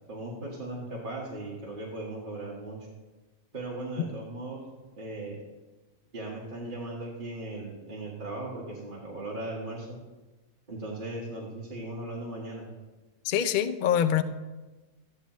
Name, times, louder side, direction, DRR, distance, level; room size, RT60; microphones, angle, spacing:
voice 1, 0.1-2.8 3.5-4.6 5.0-5.4 6.1-10.0 10.7-12.7, right 2 dB, 35° right, -5 dB, 1.6 m, -37 dB
voice 2, 13.2-14.2, left 9 dB, 75° left, 10 dB, 0.4 m, -24 dB
13.0 x 9.7 x 3.1 m, 1.2 s
omnidirectional pair, 1.5 m